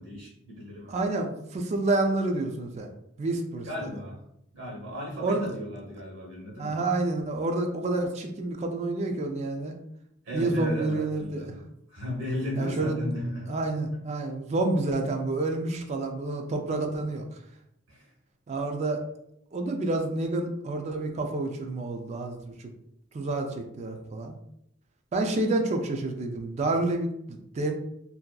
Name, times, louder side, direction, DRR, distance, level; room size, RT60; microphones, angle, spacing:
voice 1, 0.0-1.0 3.6-4.2 4.5-6.8 10.2-13.6 14.2-14.3 17.9-18.1, equal, 75° right, -2 dB, 1.0 m, -35 dB
voice 2, 0.9-2.9 3.2-3.9 5.2-5.5 6.6-9.7 10.3-11.5 12.6-13.0 13.5-17.2 18.5-19.0 19.5-22.7 23.1-24.4 25.1-27.7, right 2 dB, 35° right, 4 dB, 0.3 m, -29 dB
2.6 x 2.3 x 2.2 m, 0.78 s
head